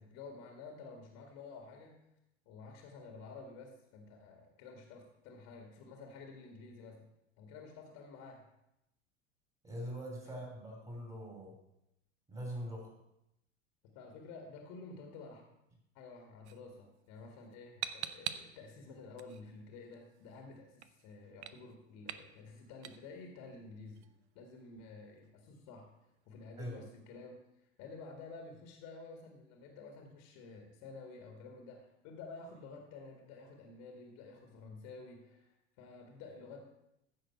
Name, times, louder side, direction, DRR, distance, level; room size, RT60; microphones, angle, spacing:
voice 1, 0.0-1.9 2.5-7.0 7.4-8.5 10.2-10.4 13.9-15.4 15.9-24.1 24.4-25.9 26.3-36.7, left 4 dB, 45° left, 2 dB, 1.9 m, -51 dB
voice 2, 9.6-11.5 12.3-12.9 26.6-26.8, equal, 15° right, -1 dB, 3.2 m, -42 dB
sound 1, 16.4-26.3, right 10 dB, 60° right, 0.7 m, -49 dB
15.0 x 6.4 x 4.4 m, 0.85 s
figure-of-eight pair, 80°, 37 cm